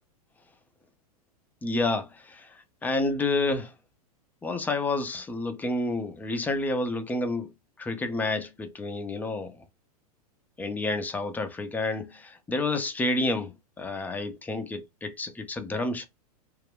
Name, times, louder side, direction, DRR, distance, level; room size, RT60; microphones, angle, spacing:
voice 1, 1.6-2.5 2.8-3.7 4.4-7.5 7.8-9.6 10.6-16.1, left 2 dB, 10° left, 0.4 m, -29 dB
2.4 x 2.0 x 3.3 m
hypercardioid pair, 105°, 20 cm